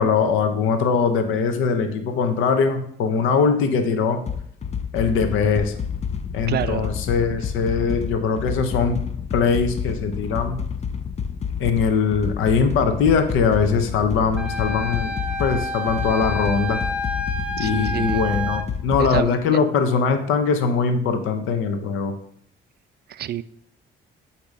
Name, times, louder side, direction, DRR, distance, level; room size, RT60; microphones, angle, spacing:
voice 1, 0.0-4.2 4.9-5.7 6.3-9.0 9.3-10.6 11.6-15.1 15.4-16.8 17.6-22.1, left 5 dB, 90° left, 7 dB, 0.8 m, -21 dB
sound 1, 4.3-19.2, left 7 dB, 35° left, 0.5 m, -29 dB
voice 2, 6.5-6.9 17.6-18.2 19.0-19.4 23.1-23.4, right 11 dB, 55° right, 16 dB, 0.4 m, -28 dB
Wind instrument woodwind instrument, 14.4-18.6, left 1 dB, 5° right, 0.7 m, -29 dB
8.1 x 2.9 x 5.2 m, 0.69 s
cardioid pair, 90°, 20 cm